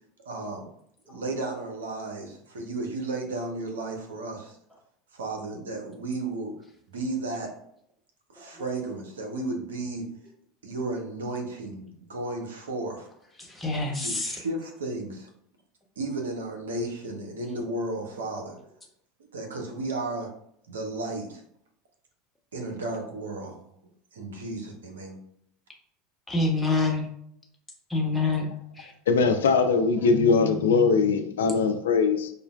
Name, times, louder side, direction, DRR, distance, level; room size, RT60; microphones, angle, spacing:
voice 1, 0.3-0.7 1.1-4.6 5.1-6.6 6.9-7.6 8.3-10.1 10.6-13.1 13.9-15.3 16.0-18.6 19.3-20.4 20.7-21.4 22.5-23.6 24.1-25.2, right 2 dB, 75° right, 2 dB, 0.6 m, -33 dB
voice 2, 13.6-14.3 26.3-27.0 27.9-28.5 28.8-28.9, left 3 dB, 10° left, -2 dB, 1.0 m, -26 dB
voice 3, 29.1-32.3, left 4 dB, 75° left, 7 dB, 0.3 m, -21 dB
5.0 x 2.1 x 2.3 m, 0.70 s
figure-of-eight pair, 75°, 0 cm